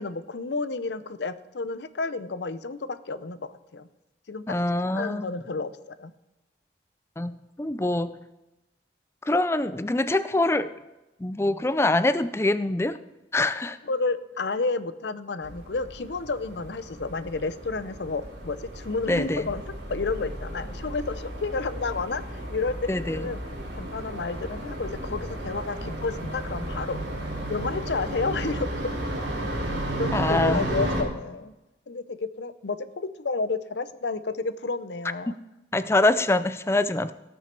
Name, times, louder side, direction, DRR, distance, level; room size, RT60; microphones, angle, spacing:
voice 1, 0.0-3.9 4.3-6.1 13.8-19.6 19.9-23.4 23.7-27.0 27.5-29.0 29.5-29.6 29.9-31.5 31.9-35.4, left 3 dB, 70° left, 14 dB, 0.6 m, -31 dB
voice 2, 4.5-5.3 7.2-8.1 9.3-10.7 11.2-13.0 13.3-13.8 19.1-19.5 22.9-23.2 30.1-30.7 35.3-35.4 35.7-37.1, left 2 dB, 15° left, 13 dB, 0.4 m, -24 dB
sound 1, 15.4-31.0, right 1 dB, 75° right, 3.0 m, -33 dB
18.0 x 6.3 x 4.4 m, 1.0 s
head